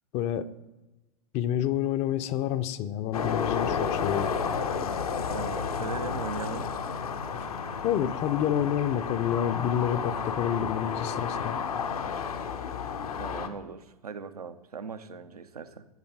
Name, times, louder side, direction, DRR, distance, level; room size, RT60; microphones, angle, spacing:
voice 1, 0.1-0.5 1.3-4.3 7.3-7.5 7.8-11.6, left 10 dB, 35° left, 13 dB, 0.5 m, -28 dB
sound 1, 3.1-13.5, left 6 dB, 75° left, 0.8 m, -31 dB
voice 2, 5.3-6.7 13.2-15.9, right 5 dB, 80° right, 9 dB, 0.6 m, -39 dB
13.0 x 5.2 x 4.7 m, 1.0 s
figure-of-eight pair, 90°, 19 cm